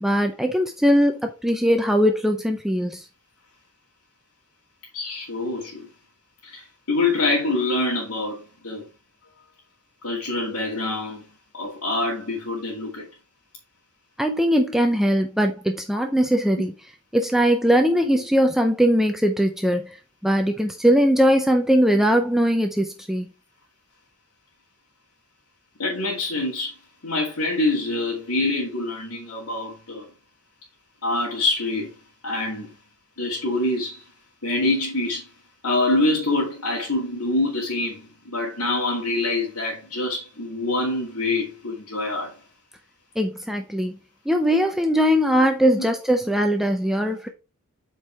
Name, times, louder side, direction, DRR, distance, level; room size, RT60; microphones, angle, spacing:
voice 1, 0.0-3.1 14.2-16.7 17.1-20.0 20.2-23.3 43.2-43.9 44.3-47.3, equal, ahead, 0.5 m, -20 dB
voice 2, 4.9-5.9 6.4-8.8 10.0-11.2 11.5-13.1 25.8-26.7 27.0-30.1 31.0-31.9 32.2-32.8 33.2-34.0 34.4-35.3 35.6-42.3, left 2 dB, 80° left, 2.3 m, -25 dB
8.1 x 4.5 x 3.5 m
head